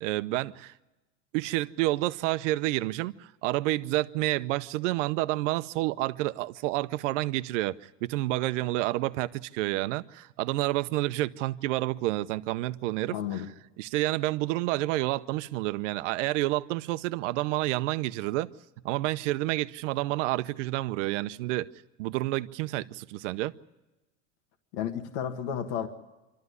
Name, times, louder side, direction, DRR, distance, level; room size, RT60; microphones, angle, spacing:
voice 1, 0.0-0.7 1.3-13.1 13.8-18.5 18.8-21.7 22.0-23.5, right 17 dB, 75° right, 0.8 m, -29 dB
voice 2, 13.1-13.5 24.7-25.9, left 9 dB, 70° left, 1.7 m, -32 dB
26.5 x 13.0 x 9.6 m
supercardioid pair, 130°, 37 cm